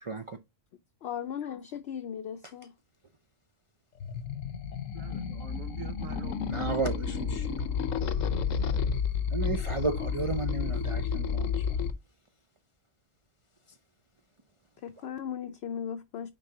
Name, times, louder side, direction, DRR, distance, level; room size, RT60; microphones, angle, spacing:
voice 1, 0.0-0.4 6.5-7.7 8.5-8.6 9.3-11.7, right 4 dB, 40° right, 0.5 m, -33 dB
voice 2, 1.0-2.7 14.8-16.3, left 8 dB, 60° left, 0.8 m, -37 dB
sound 1, 4.0-11.9, left 6 dB, 85° left, 1.1 m, -31 dB
voice 3, 4.9-7.5, right 6 dB, 90° right, 1.4 m, -45 dB
9.3 x 3.8 x 2.7 m
omnidirectional pair, 1.3 m